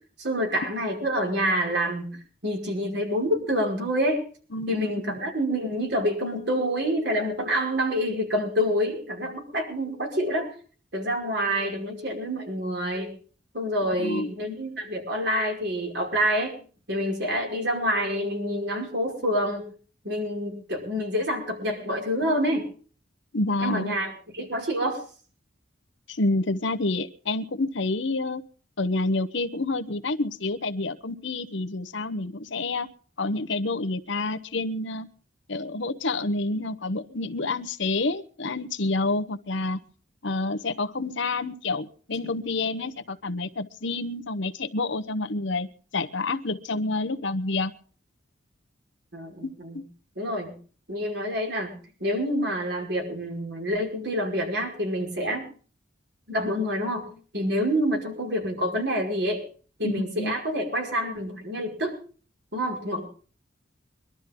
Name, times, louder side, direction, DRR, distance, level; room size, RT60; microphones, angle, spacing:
voice 1, 0.2-4.2 4.7-10.5 10.9-13.1 13.5-16.6 16.9-19.7 20.0-22.7 23.6-25.0 49.1-49.8 50.2-50.5 50.9-55.5 56.3-59.5 59.8-61.9 62.5-63.0, equal, 60° right, 1 dB, 5.4 m, -27 dB
voice 2, 4.5-4.9 13.8-14.3 23.3-23.9 26.1-28.4 28.8-32.9 33.2-35.1 35.5-39.8 40.2-45.7 45.9-47.7 49.7-49.8 59.8-60.3, left 2 dB, 70° left, 8 dB, 1.0 m, -28 dB
23.0 x 12.5 x 3.8 m, 0.41 s
head